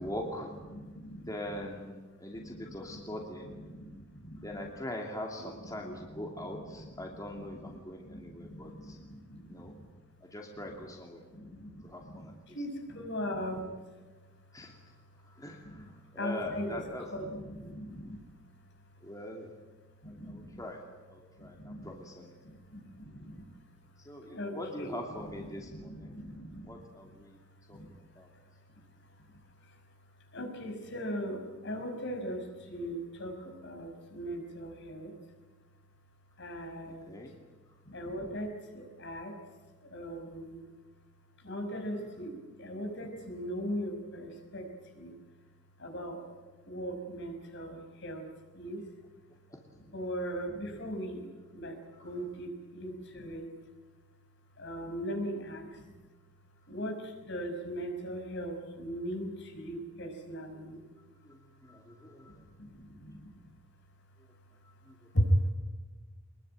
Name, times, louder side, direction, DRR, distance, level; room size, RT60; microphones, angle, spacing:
voice 1, 0.0-0.5 1.3-3.5 4.4-9.0 9.5-9.7 10.3-11.2 11.8-12.3 14.5-14.7 15.3-17.0 19.0-19.5 20.1-20.8 21.1-22.3 24.0-26.1 26.7-27.4 27.7-27.8 28.2-28.3 36.9-37.3 49.5-49.6 52.0-52.2 54.8-54.9 61.2-62.3, left 1 dB, 15° left, 1 dB, 2.7 m, -42 dB
voice 2, 0.7-1.7 2.3-4.7 5.4-9.9 10.6-10.9 11.3-13.7 15.6-15.8 16.2-18.2 20.0-20.5 21.4-21.9 22.4-23.4 24.3-26.7 27.7-27.9 29.7-29.8 30.3-35.1 36.4-37.1 37.9-39.4 39.8-40.6 41.4-45.1 45.8-46.2 46.6-48.3 48.5-48.9 49.8-51.2 51.5-53.5 54.6-55.9 56.7-60.8 62.3-63.3 65.1-65.3, equal, 60° left, 4 dB, 5.8 m, -39 dB
24.0 x 21.5 x 9.0 m, 1.2 s
head